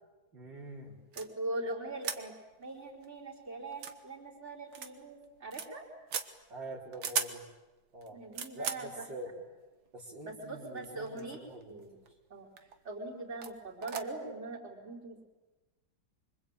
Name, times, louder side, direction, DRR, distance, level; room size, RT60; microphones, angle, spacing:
voice 1, 0.3-1.0 6.5-7.4 7.9-8.2 8.5-9.3 9.9-11.9, right 1 dB, 65° right, -3 dB, 4.7 m, -45 dB
voice 2, 1.1-5.8 8.1-9.1 10.2-11.4 11.7-11.9 12.3-15.2, right 2 dB, 35° right, -1 dB, 5.0 m, -41 dB
sound 1, 1.1-1.3 2.0-2.2 2.6-2.7 3.0-3.1 3.7-4.0 4.7-4.9 5.2-5.7 6.1-6.3 6.9-7.4 8.0-8.9 9.9-10.0 10.8-11.4 11.6-12.1 12.6-12.8 13.4-13.5 13.8-14.0, right 7 dB, 85° right, 2.4 m, -37 dB
25.5 x 25.0 x 8.9 m, 1.2 s
omnidirectional pair, 2.2 m